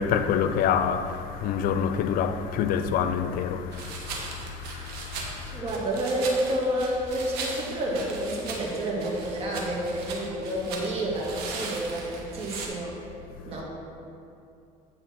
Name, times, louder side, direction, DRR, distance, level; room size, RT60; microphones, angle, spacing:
voice 1, 0.0-5.6, left 7 dB, 65° left, 0.5 m, -27 dB
sound 1, 3.7-12.7, right 3 dB, 80° right, 1.3 m, -38 dB
voice 2, 5.5-13.0 13.5-13.7, right 1 dB, 35° right, 2.0 m, -29 dB
9.1 x 3.9 x 5.9 m
supercardioid pair, 100°, 16 cm